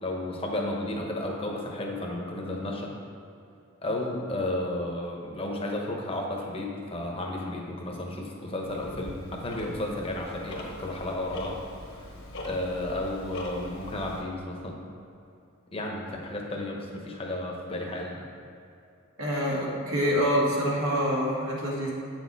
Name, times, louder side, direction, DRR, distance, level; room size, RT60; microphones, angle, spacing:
voice 1, 0.0-2.9 3.8-11.5 11.9-12.1 12.4-14.8 15.7-18.3, left 1 dB, 25° left, -1 dB, 1.1 m, -33 dB
Tick-tock, 8.6-14.2, left 1 dB, 60° left, 1.5 m, -42 dB
voice 2, 19.2-21.9, equal, 75° right, -4 dB, 1.9 m, -26 dB
8.8 x 6.3 x 4.1 m, 2.7 s
head